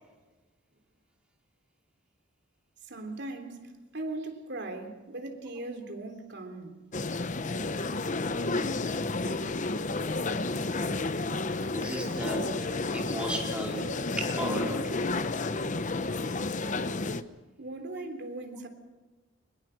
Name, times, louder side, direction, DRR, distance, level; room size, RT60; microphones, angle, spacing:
voice 1, 2.9-6.8 17.6-18.7, right 2 dB, 55° right, 3.5 m, -39 dB
sound 1, 6.9-17.2, left 3 dB, 40° left, 0.9 m, -31 dB
voice 2, 11.7-12.5 12.9-13.9 14.2-15.0, right 1 dB, 5° right, 4.6 m, -35 dB
23.5 x 21.5 x 6.5 m
head